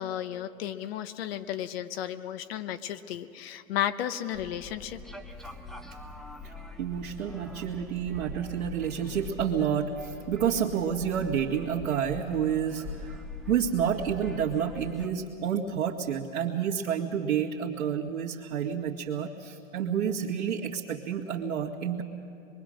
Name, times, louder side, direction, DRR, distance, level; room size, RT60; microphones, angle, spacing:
voice 1, 0.0-5.0, left 11 dB, 45° left, 11 dB, 1.1 m, -33 dB
sound 1, 4.3-15.1, left 3 dB, ahead, 0.7 m, -43 dB
voice 2, 6.8-22.0, right 8 dB, 65° right, -5 dB, 2.2 m, -29 dB
25.5 x 22.5 x 6.5 m, 2.5 s
hypercardioid pair, 120°, 41 cm